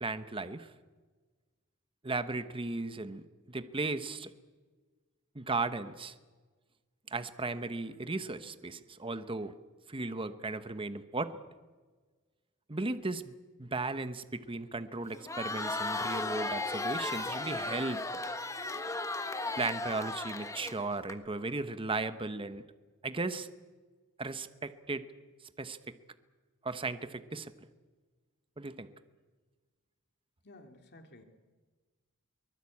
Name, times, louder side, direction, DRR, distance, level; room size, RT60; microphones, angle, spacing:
voice 1, 0.0-0.7 2.0-4.3 5.3-6.2 7.1-9.5 9.9-11.3 12.7-13.3 13.6-18.0 19.6-22.6 23.0-23.5 24.2-25.0 25.6-25.9 26.6-27.5 28.6-28.9, right 3 dB, 25° right, 11 dB, 1.0 m, -36 dB
Crowd, 15.1-21.1, left 2 dB, 15° left, 1.4 m, -35 dB
voice 2, 30.4-31.2, left 1 dB, 55° left, 5 dB, 2.8 m, -54 dB
23.5 x 21.0 x 8.6 m, 1.4 s
head